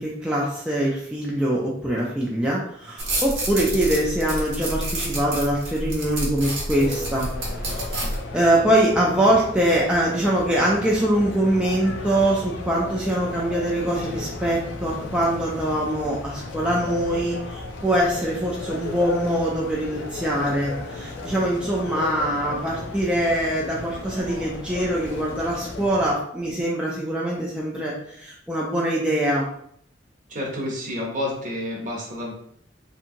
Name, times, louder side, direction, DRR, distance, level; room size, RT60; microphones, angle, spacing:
voice 1, 0.0-7.3 7.6-7.9 8.3-29.5, right 1 dB, 5° right, -4 dB, 0.3 m, -23 dB
sound 1, 3.0-8.2, right 1 dB, 90° right, 1.1 m, -29 dB
sound 2, 6.8-26.2, left 2 dB, 65° left, 0.5 m, -35 dB
voice 2, 30.3-32.3, left 1 dB, 40° right, -2 dB, 0.8 m, -30 dB
2.7 x 2.6 x 2.5 m, 0.69 s
head